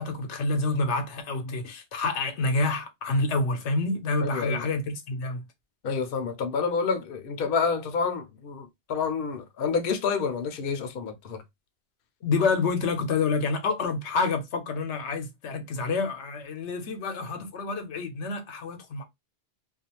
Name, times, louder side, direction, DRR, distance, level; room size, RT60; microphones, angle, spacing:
voice 1, 0.0-5.4 12.2-19.0, left 3 dB, 85° left, 0.9 m, -28 dB
voice 2, 4.2-4.7 5.8-11.4, left 5 dB, 60° left, 0.7 m, -28 dB
2.4 x 2.3 x 2.8 m
omnidirectional pair, 1.1 m